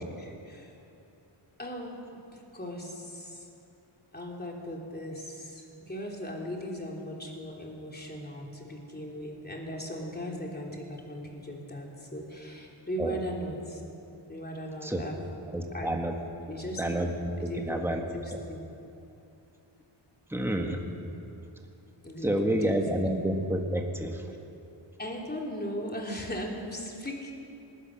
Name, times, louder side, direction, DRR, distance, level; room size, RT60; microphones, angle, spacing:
voice 1, 0.2-0.7 1.6-3.5 4.1-13.8 14.3-15.2 15.7-15.9 16.5-17.0 17.4-17.8 18.1-18.6 22.0-23.0 25.0-27.3, equal, 20° left, -1 dB, 3.4 m, -38 dB
voice 2, 15.5-16.2 16.8-17.3 17.6-18.0 20.3-20.8 22.2-24.2, right 1 dB, 5° right, 2 dB, 1.7 m, -29 dB
20.5 x 19.5 x 6.5 m, 2.8 s
wide cardioid pair, 105°, 50 cm